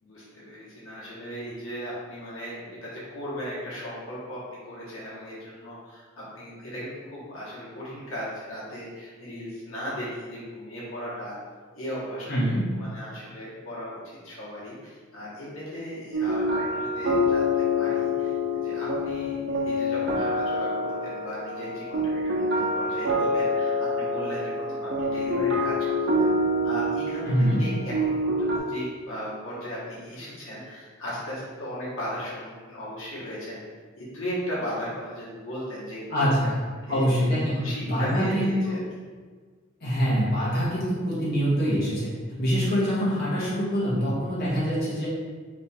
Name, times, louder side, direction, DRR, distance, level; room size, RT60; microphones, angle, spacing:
voice 1, 0.0-11.4 11.7-26.3 26.6-33.6 34.0-36.5 36.9-38.8, equal, 85° left, -8 dB, 1.4 m, -37 dB
voice 2, 12.3-12.6 27.2-27.6 36.1-36.5 36.9-38.8 39.8-45.1, equal, 55° left, -9 dB, 1.4 m, -25 dB
sound 1, 16.1-28.6, left 1 dB, 65° right, 0.8 m, -26 dB
3.3 x 3.1 x 4.2 m, 1.5 s
head